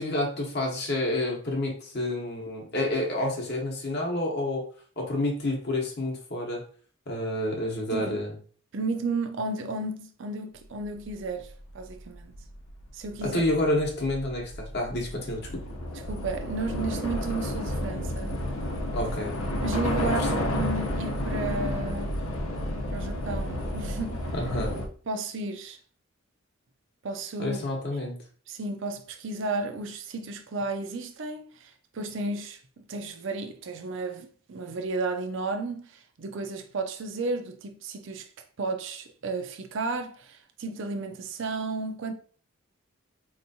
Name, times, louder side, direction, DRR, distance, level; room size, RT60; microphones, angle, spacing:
voice 1, 0.0-4.7 5.0-6.6 7.1-8.3 13.2-15.6 18.9-19.4 20.0-20.3 24.3-24.8 27.4-28.2, left 1 dB, 45° left, 0.9 m, -29 dB
voice 2, 8.7-12.3 12.9-13.4 16.1-18.4 19.6-22.1 22.9-24.2 25.1-25.8 27.0-27.6 28.5-38.3 38.6-42.1, right 3 dB, 55° right, 0.5 m, -33 dB
Train / Subway metro underground, 11.5-11.6 11.9-24.9, left 1 dB, 75° left, 0.7 m, -31 dB
4.3 x 2.9 x 2.6 m
head